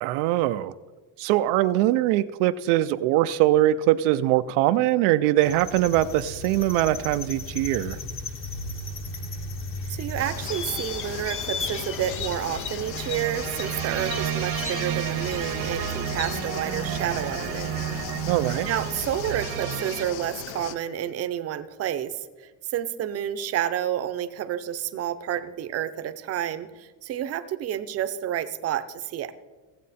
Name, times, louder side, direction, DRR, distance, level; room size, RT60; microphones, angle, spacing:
voice 1, 0.0-0.7 1.2-8.0 18.3-18.7, right 14 dB, 90° right, 11 dB, 0.6 m, -22 dB
sound 1, 5.4-19.4, left 3 dB, 25° left, 0.8 m, -36 dB
voice 2, 9.9-17.8 18.2-18.3 18.6-29.3, right 10 dB, 30° right, 11 dB, 0.6 m, -30 dB
sound 2, 10.2-20.7, left 11 dB, 75° left, 0.7 m, -38 dB
sound 3, 12.8-20.1, right 11 dB, 70° right, 1.0 m, -31 dB
16.5 x 7.4 x 4.2 m, 1.3 s
cardioid pair, 150°, 48 cm